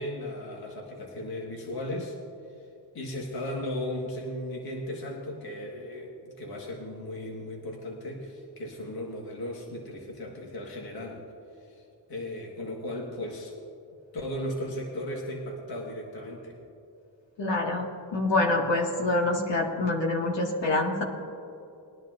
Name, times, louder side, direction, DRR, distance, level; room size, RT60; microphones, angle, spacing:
voice 1, 0.0-2.2 2.9-11.2 11.7-11.8 12.1-13.5 14.1-16.6, left 1 dB, 50° left, -1 dB, 1.9 m, -36 dB
voice 2, 17.4-21.0, left 2 dB, 65° left, -2 dB, 2.3 m, -26 dB
21.0 x 10.5 x 2.7 m, 2.7 s
cardioid pair, 75°, 46 cm